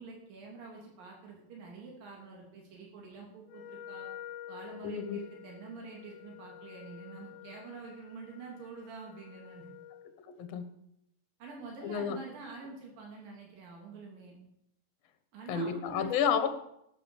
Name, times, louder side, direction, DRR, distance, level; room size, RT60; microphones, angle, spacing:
voice 1, 0.0-4.1 4.5-9.7 11.4-14.4 15.3-16.4, right 4 dB, 80° right, -1 dB, 4.7 m, -47 dB
Wind instrument woodwind instrument, 3.5-10.1, left 10 dB, 75° left, 2.2 m, -49 dB
voice 2, 4.8-5.2 10.3-10.7 11.8-12.2 15.5-16.5, left 7 dB, 60° left, 9 dB, 2.0 m, -30 dB
13.0 x 9.9 x 7.2 m, 0.79 s
omnidirectional pair, 3.9 m